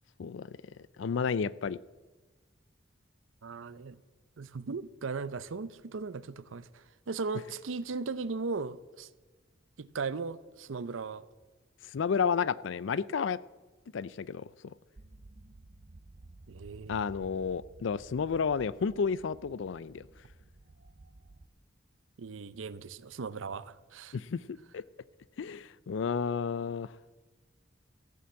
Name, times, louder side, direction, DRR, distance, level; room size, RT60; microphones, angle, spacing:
voice 1, 0.2-0.6 1.0-1.8 11.9-13.4 13.9-14.5 16.9-20.0 24.1-24.8 25.4-26.9, left 6 dB, 70° left, 0.4 m, -31 dB
voice 2, 3.4-4.0 4.4-9.1 9.8-11.2 16.5-17.1 22.2-24.2, right 4 dB, 85° right, 0.6 m, -37 dB
sound 1, 15.0-21.5, right 2 dB, 45° right, 0.7 m, -54 dB
15.0 x 8.6 x 7.6 m
head